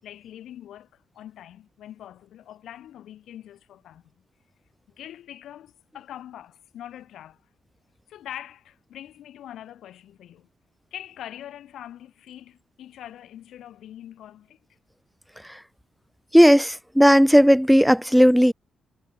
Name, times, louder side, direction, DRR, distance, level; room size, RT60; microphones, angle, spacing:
voice 1, 0.0-4.1 5.0-7.4 8.1-10.5 10.9-14.6, left 11 dB, 80° left, 5.6 m, -43 dB
voice 2, 16.3-18.5, equal, ahead, 0.4 m, -15 dB
wide cardioid pair, 165°, 0 cm